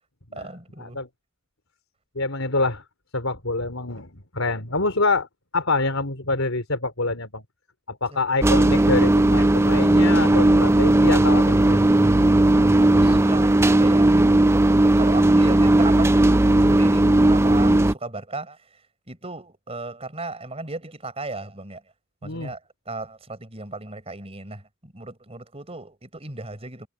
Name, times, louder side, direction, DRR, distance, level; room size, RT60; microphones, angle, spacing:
voice 1, 0.3-1.0 12.8-14.2 14.7-18.6 19.1-21.8 22.2-22.6 22.8-26.9, right 2 dB, 30° right, 5.2 m, -36 dB
voice 2, 2.2-2.8 3.1-5.3 5.5-7.4 7.9-11.8 22.2-22.5, left 3 dB, 80° left, 3.8 m, -26 dB
sound 1, 8.4-17.9, right 1 dB, 10° right, 0.4 m, -17 dB
head